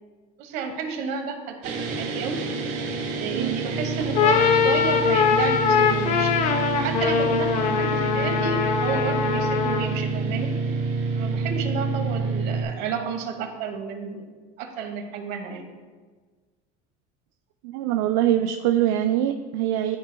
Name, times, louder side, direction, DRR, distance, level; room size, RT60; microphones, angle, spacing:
voice 1, 0.4-2.4 3.1-6.3 6.7-10.5 11.2-14.2 14.6-15.6, right 5 dB, 60° right, 4 dB, 1.1 m, -31 dB
sound 1, 1.6-12.6, right 4 dB, 40° right, 1.3 m, -28 dB
sound 2, 4.0-10.0, left 7 dB, 40° left, 0.5 m, -22 dB
voice 2, 17.6-20.0, right 11 dB, 80° right, 6 dB, 0.4 m, -23 dB
13.0 x 4.5 x 2.2 m, 1.4 s
cardioid pair, 160°, 18 cm